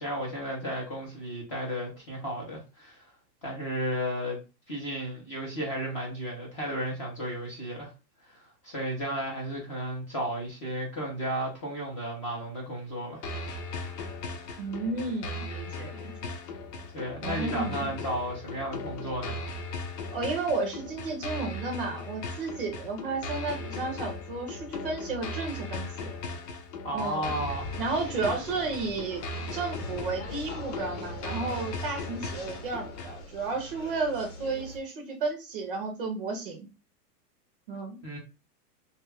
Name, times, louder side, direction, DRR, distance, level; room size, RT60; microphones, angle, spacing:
voice 1, 0.0-3.0 3.4-4.4 4.7-7.9 8.3-8.4 8.6-13.2 16.9-19.3 26.8-27.8 28.2-28.3 38.0-38.2, equal, 20° left, 0.5 m, -33 dB
sound 1, 13.2-33.2, left 2 dB, 85° left, 1.0 m, -38 dB
voice 2, 14.6-16.3 17.2-17.9 20.1-26.1 26.9-27.4 27.8-29.2 29.5-36.7 37.7-38.0, right 3 dB, 35° right, 0.5 m, -33 dB
sound 2, 27.4-34.8, left 2 dB, 50° left, 0.9 m, -43 dB
3.2 x 2.3 x 3.2 m
supercardioid pair, 175°, 47 cm